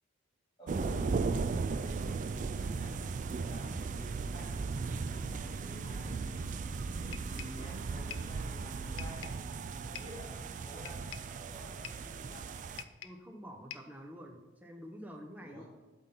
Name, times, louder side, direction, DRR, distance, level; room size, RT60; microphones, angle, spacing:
voice 1, 0.6-9.4 9.8-12.7 15.4-15.6, left 1 dB, 20° left, -7 dB, 2.2 m, -51 dB
sound 1, 0.7-12.8, right 4 dB, 40° right, 0.3 m, -37 dB
sound 2, 7.1-7.6 8.1-8.4 9.0-9.5 10.0-10.2 10.9-11.4 11.8-12.1 12.8-13.3 13.7-14.0, left 10 dB, 85° left, 0.5 m, -47 dB
voice 2, 13.0-15.6, equal, 10° right, 2 dB, 0.8 m, -48 dB
8.2 x 3.9 x 5.6 m, 1.2 s
head